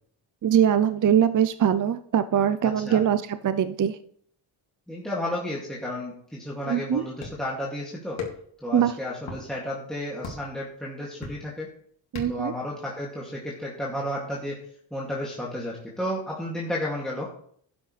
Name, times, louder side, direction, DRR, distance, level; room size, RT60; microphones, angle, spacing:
voice 1, 0.4-4.0 6.7-7.0 8.7-8.9 12.1-12.5, right 9 dB, 40° right, 12 dB, 0.6 m, -22 dB
voice 2, 4.9-8.2 8.6-11.7 12.3-14.6 14.9-17.3, left 1 dB, ahead, -5 dB, 2.5 m, -32 dB
sound 1, 7.2-7.5 8.2-8.6 9.2-9.4 10.2-10.6 11.2-11.6 12.2-12.5, left 4 dB, 70° left, 2.7 m, -36 dB
11.5 x 9.6 x 3.3 m, 0.62 s
cardioid pair, 80°, 50 cm